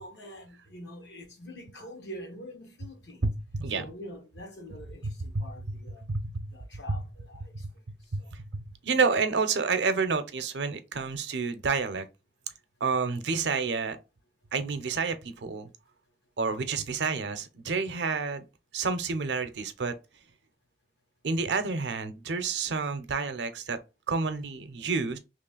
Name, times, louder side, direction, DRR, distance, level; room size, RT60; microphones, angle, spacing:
voice 1, 0.0-3.2 3.7-6.0 6.5-7.5 8.2-8.3, equal, 75° left, 1.1 m, -45 dB
voice 2, 3.2-3.9 5.0-5.5 6.1-6.3 6.9-7.0 8.1-8.4 8.8-12.0 12.8-14.0 14.5-15.7 16.4-18.4 18.7-19.9 21.2-23.8 24.1-25.2, right 4 dB, 80° right, 0.6 m, -29 dB
3.1 x 2.4 x 3.8 m
head